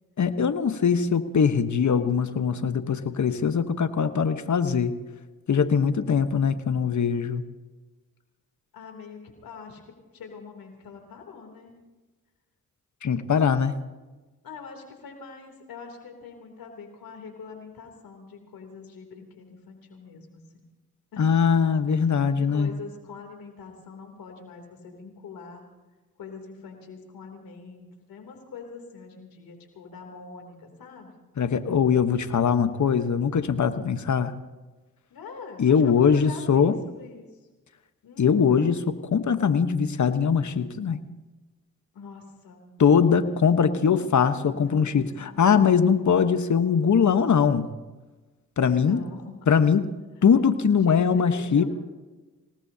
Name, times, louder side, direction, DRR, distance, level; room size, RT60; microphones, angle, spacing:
voice 1, 0.2-4.9 5.5-7.4 13.0-13.7 21.2-22.7 31.4-34.3 35.6-36.8 38.2-38.8 39.1-41.0 42.8-47.7 48.6-49.0 49.5-49.9 50.2-51.7, left 6 dB, 55° left, 10 dB, 1.3 m, -21 dB
voice 2, 8.7-11.8 14.4-20.6 21.1-21.5 21.9-25.6 26.2-31.1 35.1-37.5 38.0-38.6 41.9-42.7 43.7-44.0 44.4-46.0 48.6-49.5 50.8-51.7, left 5 dB, 85° left, 3 dB, 3.3 m, -44 dB
27.0 x 18.5 x 2.9 m, 1.2 s
supercardioid pair, 40°, 34 cm